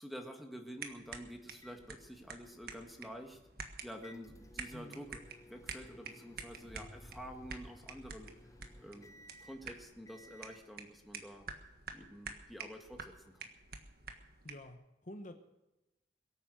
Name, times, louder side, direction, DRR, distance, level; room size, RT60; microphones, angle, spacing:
voice 1, 0.0-3.4 3.8-5.2 5.5-8.3 8.8-11.5 11.9-13.5, equal, ahead, 4 dB, 1.8 m, -49 dB
sound 1, 0.8-14.7, right 5 dB, 55° right, 1.5 m, -49 dB
sound 2, 1.6-10.7, left 1 dB, 20° left, 0.8 m, -60 dB
voice 2, 4.7-5.0 14.4-15.4, left 1 dB, 45° left, 6 dB, 1.2 m, -49 dB
Boom, 6.6-9.6, equal, 30° right, 4.1 m, -58 dB
22.5 x 9.2 x 6.5 m, 0.95 s
head